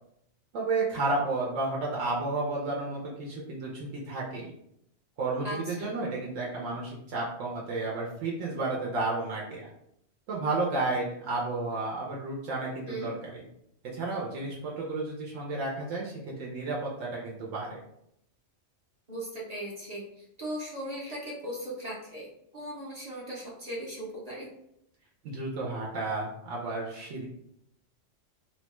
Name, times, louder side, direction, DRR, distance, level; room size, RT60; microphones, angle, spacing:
voice 1, 0.5-4.5 5.2-9.7 10.3-13.4 13.9-17.8 25.2-27.2, right 3 dB, 85° right, -3 dB, 1.0 m, -32 dB
voice 2, 5.4-5.9 12.8-13.1 19.1-22.3 22.5-24.5, right 1 dB, 40° right, -5 dB, 0.6 m, -38 dB
2.8 x 2.2 x 2.9 m, 0.75 s
omnidirectional pair, 1.3 m